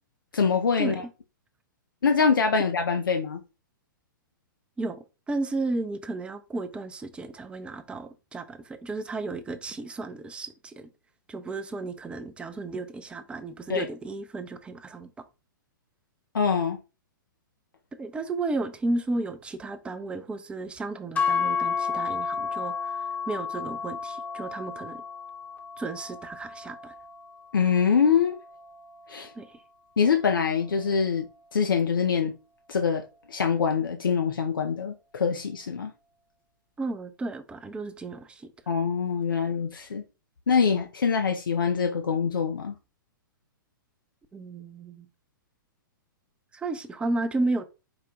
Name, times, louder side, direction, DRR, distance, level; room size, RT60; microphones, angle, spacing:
voice 1, 0.3-1.0 2.0-3.4 13.7-13.9 16.3-16.8 27.5-28.4 29.1-29.3 30.0-31.3 31.5-32.3 32.7-35.9 38.7-40.0 40.5-42.7, left 6 dB, 75° left, 0.5 m, -24 dB
voice 2, 4.8-10.9 11.3-15.1 18.0-25.0 25.8-26.9 29.4-29.6 36.8-38.5 44.3-45.1 46.5-47.7, right 2 dB, 10° right, 0.4 m, -33 dB
sound 1, 21.2-29.4, left 6 dB, 15° left, 0.7 m, -32 dB
4.9 x 2.2 x 3.7 m
figure-of-eight pair, 115°, 11 cm